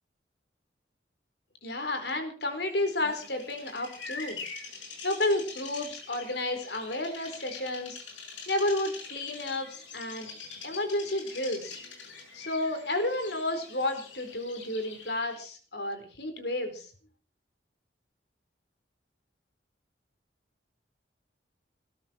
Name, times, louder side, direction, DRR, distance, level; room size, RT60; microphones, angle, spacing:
voice 1, 1.6-4.4 5.0-8.0 8.5-10.3 10.6-11.8 12.3-16.9, left 1 dB, 60° left, 6 dB, 4.4 m, -31 dB
Bird vocalization bird call bird song, 2.8-15.4, left 5 dB, 85° left, 6.8 m, -44 dB
20.0 x 14.0 x 4.6 m, 0.39 s
head